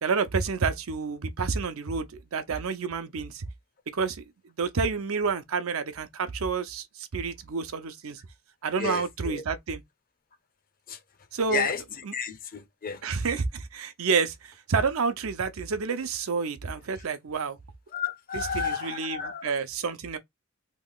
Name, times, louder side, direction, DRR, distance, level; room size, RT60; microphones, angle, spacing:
voice 1, 0.0-3.5 3.9-8.2 8.6-9.8 11.3-11.7 12.1-12.2 13.0-17.6 18.3-20.2, right 5 dB, 80° right, 0.6 m, -29 dB
voice 2, 8.8-9.4 10.9-11.0 11.5-11.8 12.1-13.0 17.9-19.5, left 6 dB, 45° left, 0.6 m, -32 dB
2.9 x 2.3 x 3.5 m
head